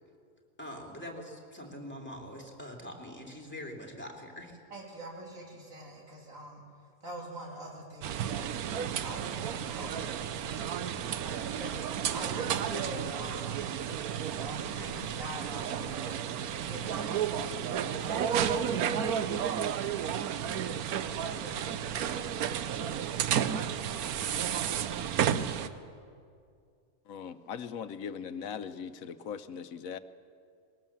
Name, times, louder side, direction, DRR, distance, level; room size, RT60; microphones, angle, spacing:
voice 1, 0.6-4.6, left 1 dB, 5° left, 0 dB, 2.8 m, -43 dB
voice 2, 4.7-6.6 7.0-8.5 9.0-10.6 11.0-13.6 14.4-19.6 20.8-23.1, right 1 dB, 65° right, -2 dB, 3.7 m, -44 dB
sound 1, 8.0-25.7, right 9 dB, 80° right, 1.2 m, -32 dB
voice 3, 27.1-30.0, left 7 dB, 70° left, 12 dB, 1.1 m, -40 dB
20.5 x 18.5 x 7.2 m, 2.3 s
omnidirectional pair, 1.5 m